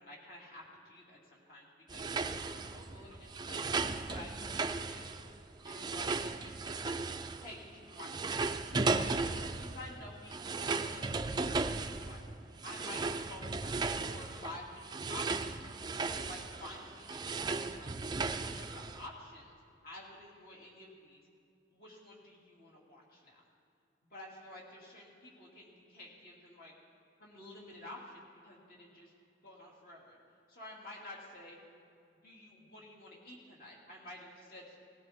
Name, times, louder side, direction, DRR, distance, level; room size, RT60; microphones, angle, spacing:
voice 1, 0.0-2.1 2.5-5.2 5.6-6.9 7.4-8.9 9.6-12.2 12.6-13.7 14.0-15.6 16.1-17.9 18.3-19.6 19.8-21.2 21.7-23.4 24.1-26.7 27.2-29.1 29.4-30.2 30.5-31.6 32.1-34.8, left 1 dB, 55° left, -3 dB, 2.7 m, -51 dB
sound 1, 1.9-7.7 7.9-19.1, right 3 dB, 25° right, 0.4 m, -36 dB
18.5 x 14.0 x 3.6 m, 2.5 s
head